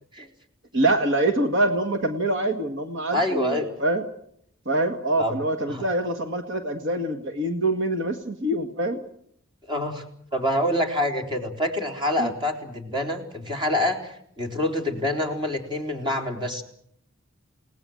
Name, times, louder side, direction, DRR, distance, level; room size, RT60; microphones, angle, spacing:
voice 1, 0.7-4.1 4.7-9.0 12.2-12.3, right 1 dB, 65° right, 6 dB, 1.8 m, -25 dB
voice 2, 3.1-3.7 5.2-5.4 5.7-5.9 9.7-10.0 10.3-16.6, left 1 dB, 25° right, 4 dB, 3.8 m, -26 dB
29.0 x 19.0 x 7.8 m, 0.69 s
head